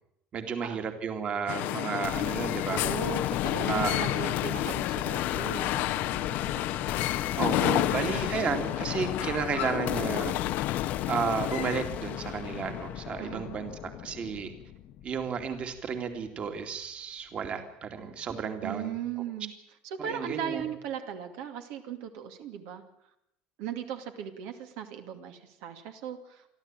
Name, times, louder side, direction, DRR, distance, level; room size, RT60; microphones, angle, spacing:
voice 1, 0.3-2.8 3.7-4.1 7.4-10.3 11.1-13.7 14.0-14.5 15.0-18.9 20.0-20.6, right 6 dB, 35° right, 6 dB, 2.5 m, -32 dB
sound 1, 1.5-11.8, left 16 dB, 65° left, 0.8 m, -31 dB
sound 2, 2.0-16.0, left 12 dB, 50° left, 1.1 m, -36 dB
voice 2, 2.7-6.9 7.8-8.2 8.8-8.9 13.2-13.6 18.6-19.5 19.8-22.8 23.6-26.5, right 8 dB, 75° right, 6 dB, 2.5 m, -38 dB
28.0 x 12.0 x 9.0 m, 0.78 s
cardioid pair, 145°, 3 cm